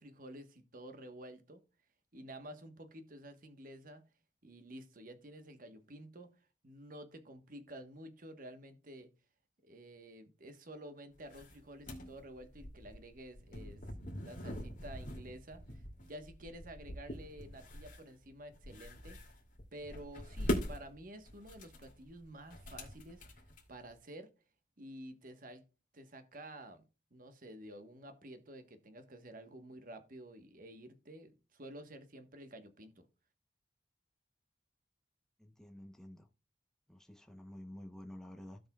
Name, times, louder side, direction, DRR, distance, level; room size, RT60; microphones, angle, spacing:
voice 1, 0.0-1.6 2.1-4.0 4.4-6.3 6.6-9.1 9.6-13.8 14.2-19.2 19.7-23.2 23.7-24.3 24.8-25.6 25.9-26.8 27.1-33.0, right 1 dB, 50° right, 1.2 m, -51 dB
sound 1, 11.2-23.9, equal, 45° left, 2.5 m, -43 dB
voice 2, 35.4-36.3 36.9-38.6, left 1 dB, 5° left, 0.8 m, -50 dB
16.0 x 5.4 x 2.3 m
head